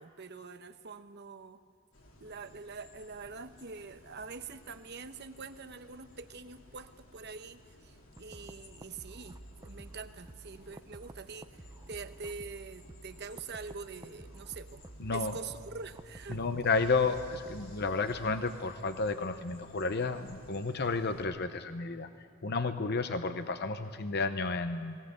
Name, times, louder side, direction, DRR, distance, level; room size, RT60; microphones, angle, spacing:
voice 1, 0.0-1.6 2.2-14.8 15.1-16.4, right 4 dB, 50° right, 10 dB, 0.9 m, -45 dB
sound 1, 1.9-21.2, left 1 dB, 65° left, 2.7 m, -58 dB
sound 2, 8.2-18.6, right 2 dB, 15° right, 0.5 m, -51 dB
voice 2, 15.0-15.3 16.3-25.0, left 4 dB, 50° left, 9 dB, 0.8 m, -32 dB
20.0 x 19.0 x 8.1 m, 2.4 s
head